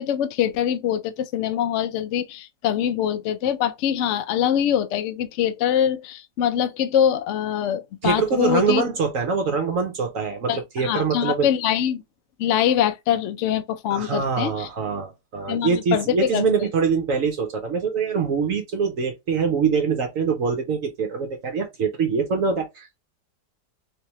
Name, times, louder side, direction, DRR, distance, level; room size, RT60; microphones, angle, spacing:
voice 1, 0.0-8.8 10.5-12.0 12.4-14.7 15.5-16.4, left 9 dB, 85° left, 0.6 m, -23 dB
voice 2, 8.0-11.5 13.9-23.0, right 5 dB, 60° right, 0.9 m, -24 dB
3.4 x 3.3 x 2.9 m
omnidirectional pair, 2.0 m